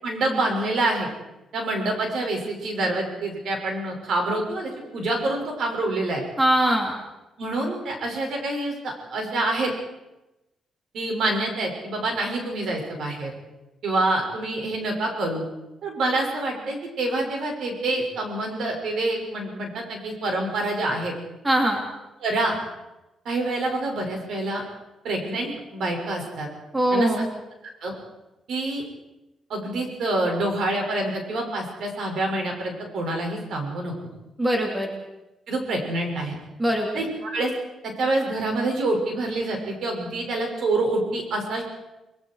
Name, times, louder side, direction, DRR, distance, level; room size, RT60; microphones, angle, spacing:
voice 1, 0.0-1.1 1.5-6.2 7.4-9.7 10.9-13.3 13.8-15.4 15.8-21.1 22.2-22.6 23.2-24.6 25.0-26.5 26.9-27.1 27.8-27.9 28.5-28.8 29.5-33.9 35.5-36.4 36.9-37.5 37.8-41.6, right 2 dB, 65° right, 1 dB, 6.6 m, -26 dB
voice 2, 6.4-6.9 21.4-21.8 26.7-27.3 34.4-34.9 36.6-36.9, right 1 dB, 10° right, 1 dB, 2.9 m, -21 dB
29.5 x 21.0 x 4.9 m, 0.98 s
cardioid pair, 145°, 0 cm